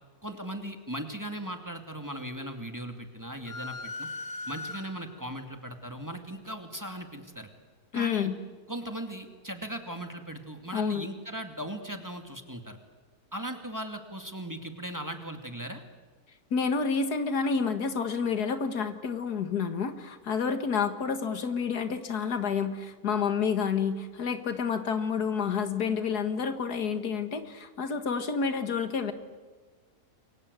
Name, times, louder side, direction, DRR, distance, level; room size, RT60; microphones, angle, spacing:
voice 1, 0.2-4.1 4.5-7.5 7.9-8.3 8.7-12.8 13.3-15.8, right 1 dB, 10° right, 5 dB, 2.4 m, -38 dB
sound 1, 3.5-5.3, left 2 dB, 55° left, 1.5 m, -39 dB
voice 2, 7.9-8.4 10.7-11.1 16.5-29.1, left 6 dB, 85° left, 9 dB, 2.2 m, -29 dB
28.5 x 23.5 x 8.3 m, 1.4 s
omnidirectional pair, 1.6 m